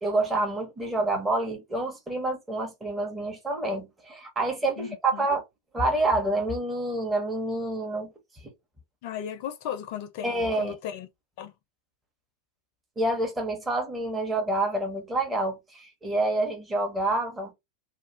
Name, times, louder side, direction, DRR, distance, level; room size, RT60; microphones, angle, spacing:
voice 1, 0.0-5.4 5.7-8.1 8.4-8.5 10.2-10.7 13.0-17.5, right 2 dB, 10° right, 1.0 m, -28 dB
voice 2, 4.8-5.3 9.0-11.1 11.4-11.5, left 9 dB, 45° left, 0.5 m, -36 dB
2.4 x 2.3 x 3.3 m
figure-of-eight pair, 90°, 0 cm